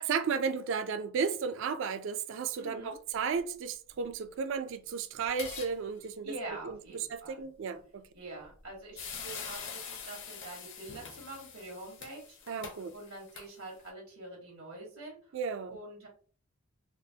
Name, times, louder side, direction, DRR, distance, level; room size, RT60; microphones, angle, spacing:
voice 1, 0.1-8.1 12.5-12.9 15.3-15.8, right 6 dB, 60° right, 0.3 m, -34 dB
voice 2, 2.6-3.0 6.2-7.5 8.1-12.6 12.9-15.2 15.7-16.1, right 2 dB, 80° right, 1.3 m, -45 dB
sound 1, 5.2-5.7 6.0-6.1 8.4-8.6 9.0-13.9, left 6 dB, 60° left, 0.6 m, -44 dB
3.8 x 2.1 x 2.7 m
head